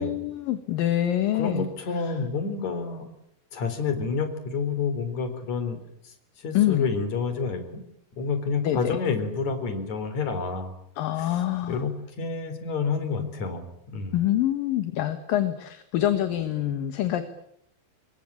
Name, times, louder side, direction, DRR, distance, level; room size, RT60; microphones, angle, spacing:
voice 1, 0.0-1.7 1.9-2.2 6.5-6.9 8.6-9.0 11.0-11.8 14.1-17.3, left 12 dB, 70° left, 9 dB, 3.1 m, -26 dB
voice 2, 1.3-3.1 3.5-5.8 6.0-7.8 8.2-10.7 11.2-11.3 11.7-11.9 12.2-14.2, left 5 dB, 50° left, 9 dB, 4.8 m, -29 dB
26.5 x 22.5 x 8.7 m, 0.72 s
omnidirectional pair, 4.2 m